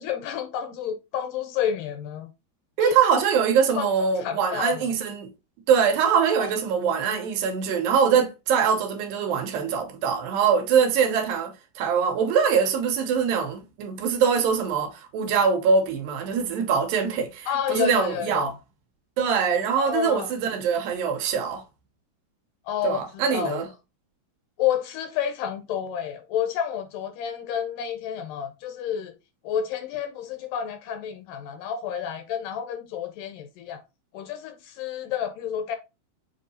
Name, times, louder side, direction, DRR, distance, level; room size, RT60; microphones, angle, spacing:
voice 1, 0.0-2.3 2.8-2.9 3.8-3.9 4.2-4.9 6.4-6.5 17.5-18.6 19.8-20.3 22.7-23.7 24.6-29.1 29.4-33.8 34.1-35.8, left 9 dB, 80° left, 2.1 m, -30 dB
voice 2, 2.8-5.3 5.7-18.5 19.2-21.6 22.8-23.7, right 6 dB, 85° right, 2.5 m, -23 dB
7.3 x 2.7 x 2.6 m
omnidirectional pair, 4.1 m